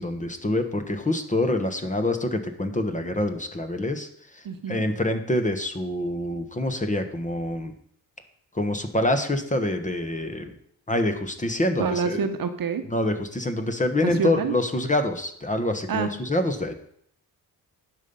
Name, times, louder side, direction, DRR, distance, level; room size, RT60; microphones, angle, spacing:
voice 1, 0.0-7.7 8.5-10.5 10.9-12.2 12.8-16.7, left 1 dB, 20° left, 7 dB, 1.1 m, -26 dB
voice 2, 4.4-4.8 11.8-12.8 14.0-14.5 15.9-16.1, right 6 dB, 55° right, 8 dB, 1.1 m, -27 dB
10.5 x 5.5 x 5.4 m, 0.67 s
cardioid pair, 85°, 40 cm